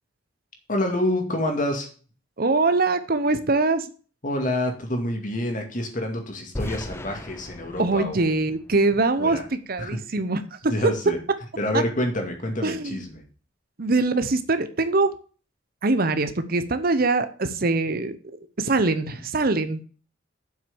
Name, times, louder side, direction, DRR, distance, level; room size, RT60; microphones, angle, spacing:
voice 1, 0.7-1.9 4.2-8.3 9.2-9.4 9.8-10.0 10.7-11.2 11.6-13.2, left 1 dB, 45° left, 4 dB, 2.3 m, -27 dB
voice 2, 2.4-3.9 7.8-10.7 11.7-11.8 12.6-13.0 13.8-15.1 15.8-19.8, right 3 dB, 50° right, 11 dB, 0.8 m, -23 dB
sound 1, 6.5-9.5, left 1 dB, 15° left, 0.5 m, -37 dB
7.6 x 6.2 x 7.0 m, 0.39 s
head